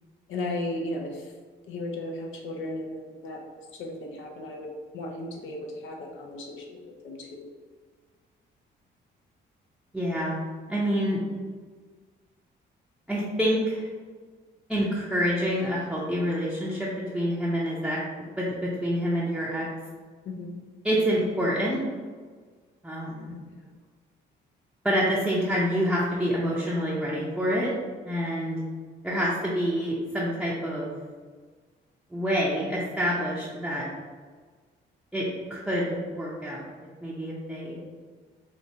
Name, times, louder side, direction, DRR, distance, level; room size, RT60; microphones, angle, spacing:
voice 1, 0.3-1.3 1.7-3.4 3.7-7.5 20.2-20.6 23.5-23.7, left 1 dB, 75° left, 1 dB, 0.6 m, -35 dB
voice 2, 9.9-10.4 10.7-11.2 13.1-13.9 14.7-16.9 17.1-18.0 18.4-19.7 20.8-21.8 22.8-23.3 24.8-27.7 28.0-28.6 29.0-30.9 32.1-33.9 35.1-36.6 37.0-37.8, equal, 5° right, -7 dB, 0.6 m, -27 dB
4.5 x 2.3 x 2.7 m, 1.5 s
cardioid pair, 90°, 20 cm